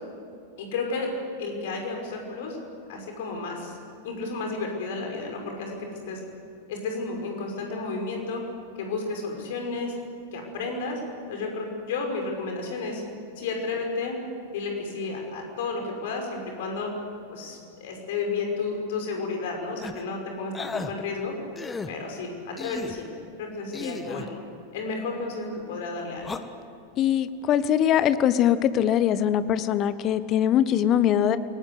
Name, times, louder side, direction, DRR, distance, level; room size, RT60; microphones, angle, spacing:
voice 1, 0.6-1.1 1.4-2.6 2.9-3.8 4.0-5.8 6.1-6.2 6.7-8.4 8.8-9.9 10.3-11.0 11.3-13.0 13.4-14.2 14.5-16.9 17.3-21.3 21.9-23.1 23.4-24.4 24.7-26.3, left 3 dB, 55° left, 2 dB, 5.7 m, -32 dB
sound 1, 19.8-20.0 20.5-20.9 21.6-21.9 22.6-23.0 23.7-24.3 26.2-26.4, left 4 dB, 15° left, 1.3 m, -34 dB
voice 2, 27.0-31.4, left 10 dB, 35° left, 14 dB, 1.1 m, -22 dB
27.5 x 19.0 x 8.2 m, 2.6 s
figure-of-eight pair, 90°, 0 cm